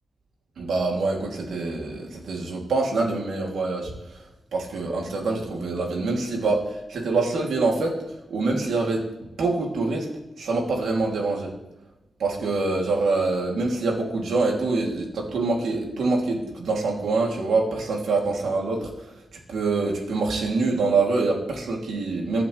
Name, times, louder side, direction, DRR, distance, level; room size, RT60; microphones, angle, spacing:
voice 1, 0.6-8.0 8.3-9.1 9.4-10.1 10.4-11.5 12.2-19.1 19.5-22.4, right 3 dB, 90° right, -1 dB, 3.3 m, -25 dB
24.0 x 8.5 x 3.5 m, 0.99 s
wide cardioid pair, 115°, 0 cm